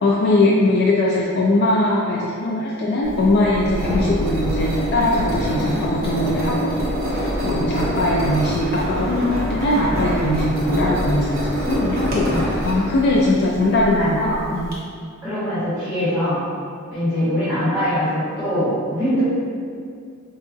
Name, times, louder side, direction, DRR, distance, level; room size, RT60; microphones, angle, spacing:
voice 1, 0.0-6.7 7.1-14.7, left 2 dB, 55° left, -4 dB, 0.3 m, -20 dB
Engine, 3.0-14.7, equal, 50° right, 0.7 m, -25 dB
voice 2, 5.4-6.0 6.3-6.6 7.5-7.8 10.6-10.8 12.3-12.5 13.7-14.4 15.2-16.4 16.9-19.3, equal, 10° right, -16 dB, 1.2 m, -23 dB
4.6 x 2.3 x 2.5 m, 2.2 s
head